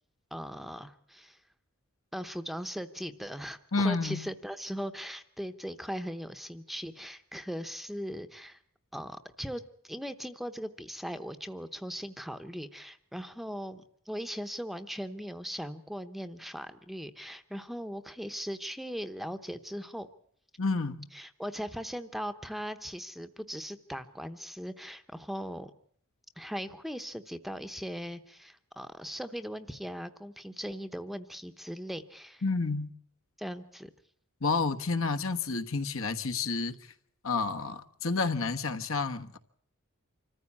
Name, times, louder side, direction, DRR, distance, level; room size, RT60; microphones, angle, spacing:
voice 1, 0.3-1.4 2.1-8.6 8.9-20.1 21.1-25.7 26.4-32.4 33.4-33.9, equal, ahead, 0.8 m, -39 dB
voice 2, 3.7-4.2 20.6-21.1 32.4-32.9 34.4-36.8 37.2-39.4, left 4 dB, 70° left, 1.3 m, -30 dB
26.0 x 14.5 x 8.5 m
head